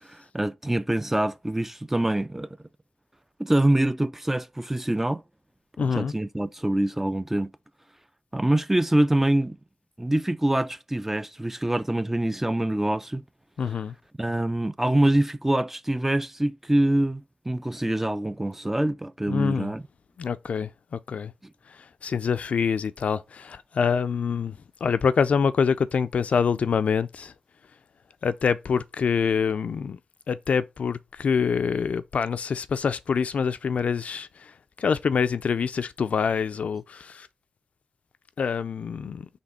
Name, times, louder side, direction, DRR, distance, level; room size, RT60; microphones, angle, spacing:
voice 1, 0.0-2.6 3.4-5.2 5.8-7.5 8.3-9.6 10.0-13.2 14.2-19.8 21.4-21.5, right 1 dB, 15° right, 0.3 m, -25 dB
voice 2, 5.8-6.1 13.6-13.9 19.3-19.7 20.2-21.3 22.0-27.3 28.2-30.0 30.3-34.5 34.8-37.3 38.4-39.3, left 6 dB, 65° left, 0.3 m, -25 dB
4.2 x 2.8 x 4.2 m
cardioid pair, 60°, 2 cm